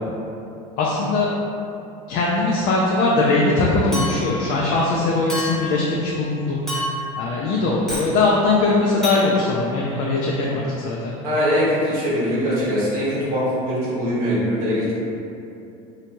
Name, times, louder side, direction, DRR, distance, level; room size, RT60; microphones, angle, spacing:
voice 1, 0.8-1.3 2.1-6.6 7.2-11.0, left 3 dB, 50° left, -4 dB, 0.4 m, -20 dB
Chink clink, 3.9-4.4 5.3-5.8 6.7-7.2 7.9-8.1 9.0-9.2, left 1 dB, 5° left, 0.7 m, -28 dB
voice 2, 11.2-14.9, equal, 90° right, -10 dB, 1.4 m, -22 dB
2.8 x 2.1 x 2.9 m, 2.7 s
supercardioid pair, 115°, 18 cm